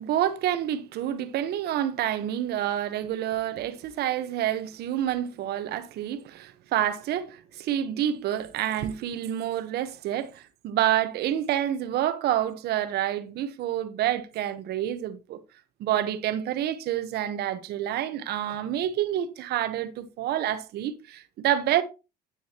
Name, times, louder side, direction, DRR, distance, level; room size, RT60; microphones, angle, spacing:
voice 1, 0.0-15.4 15.8-21.8, right 11 dB, 75° right, 1.1 m, -28 dB
9.8 x 9.2 x 2.9 m
cardioid pair, 110°, 17 cm